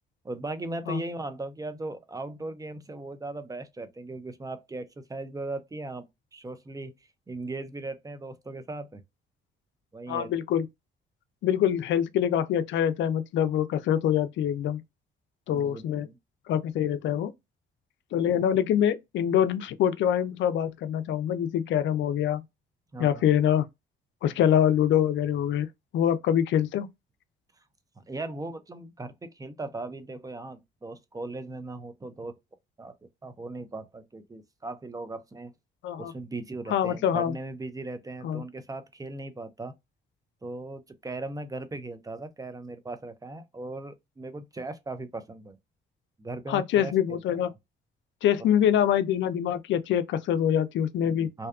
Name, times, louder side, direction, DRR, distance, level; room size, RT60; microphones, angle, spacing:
voice 1, 0.2-6.1 6.3-6.9 7.3-9.0 9.9-10.3 15.5-16.2 22.9-23.3 28.0-32.4 32.8-32.9 33.2-35.5 36.0-39.7 40.4-45.6 46.2-47.4 51.4-51.5, right 2 dB, 15° right, 0.5 m, -38 dB
voice 2, 10.1-10.7 11.4-14.8 15.5-16.1 16.5-17.3 18.1-22.4 23.0-23.7 24.2-25.7 25.9-26.9 35.8-36.1 36.7-37.3 38.2-38.4 46.5-47.5 48.2-51.3, left 10 dB, 70° left, 0.4 m, -25 dB
2.6 x 2.2 x 2.3 m
cardioid pair, 90°, 20 cm